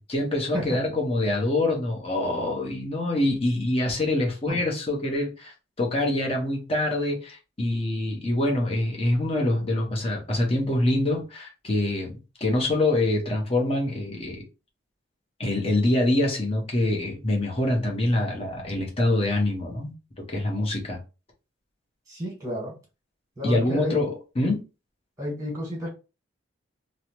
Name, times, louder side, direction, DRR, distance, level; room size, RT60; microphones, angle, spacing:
voice 1, 0.1-12.1 12.4-14.4 15.4-19.9 20.3-21.0 23.4-24.6, left 1 dB, 30° left, 0.9 m, -25 dB
voice 2, 22.1-22.7 23.4-24.0 25.2-25.9, equal, 15° right, 1.4 m, -31 dB
3.1 x 2.0 x 3.0 m
head